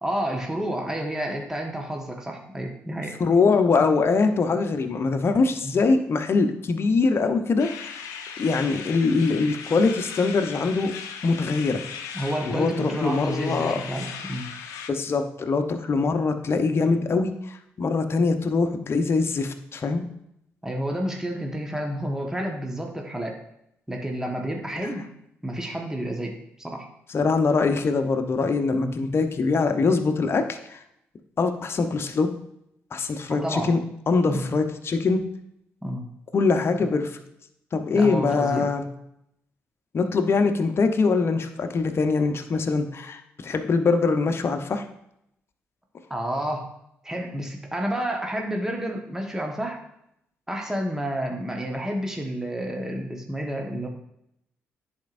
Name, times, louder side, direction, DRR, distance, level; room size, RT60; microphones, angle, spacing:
voice 1, 0.0-3.1 5.6-5.7 12.1-14.5 20.6-23.4 23.9-25.1 25.4-26.9 28.7-28.9 33.3-33.7 34.3-34.5 35.8-36.0 36.8-37.0 37.9-38.7 46.1-46.7 47.0-49.8 50.5-53.9, right 1 dB, 10° right, 1 dB, 1.3 m, -30 dB
voice 2, 3.2-7.7 8.4-10.9 11.2-11.8 12.4-13.8 14.9-20.0 27.1-30.8 31.4-32.3 32.9-33.8 34.1-35.2 36.3-37.2 37.7-38.9 39.9-44.8, left 4 dB, 45° left, 6 dB, 0.8 m, -23 dB
sound 1, 7.6-14.9, left 7 dB, 75° left, 0.6 m, -38 dB
10.5 x 4.5 x 2.6 m, 0.78 s
hypercardioid pair, 50°, 6 cm